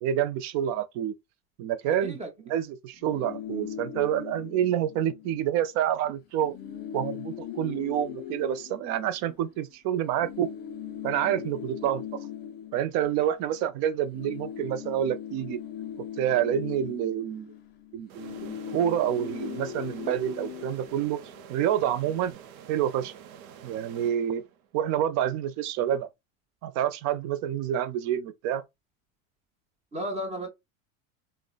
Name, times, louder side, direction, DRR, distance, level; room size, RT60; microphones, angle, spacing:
voice 1, 0.0-1.1 1.6-2.2 2.5-6.5 6.9-10.5 11.0-12.2 12.7-15.6 16.2-17.5 17.9-21.2 21.5-22.4 22.7-23.1 23.6-24.4 24.7-26.1 26.6-28.6, right 10 dB, 45° right, 0.4 m, -28 dB
voice 2, 1.8-2.3 29.9-30.5, equal, 15° right, 0.7 m, -34 dB
sound 1, 2.9-5.5 5.8-6.0 6.2-9.6 10.2-13.7 14.0-21.6, left 9 dB, 25° left, 0.4 m, -40 dB
sound 2, 18.1-24.8, right 8 dB, 85° right, 0.6 m, -48 dB
3.6 x 2.1 x 2.3 m
supercardioid pair, 140°, 42 cm